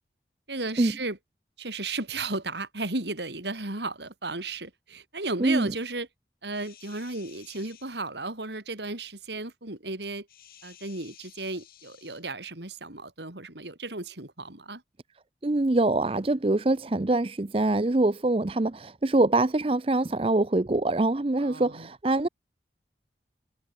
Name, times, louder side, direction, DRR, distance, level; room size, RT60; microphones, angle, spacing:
voice 1, 0.5-1.2 1.6-6.1 6.4-10.3 10.6-14.8 21.4-21.9, right 3 dB, 80° right, 3.8 m, -34 dB
voice 2, 5.4-5.7 15.4-22.3, right 2 dB, 30° right, 0.6 m, -24 dB
sound 1, 6.5-7.9 10.3-12.2 14.0-14.1, left 11 dB, 55° left, 6.4 m, -53 dB
head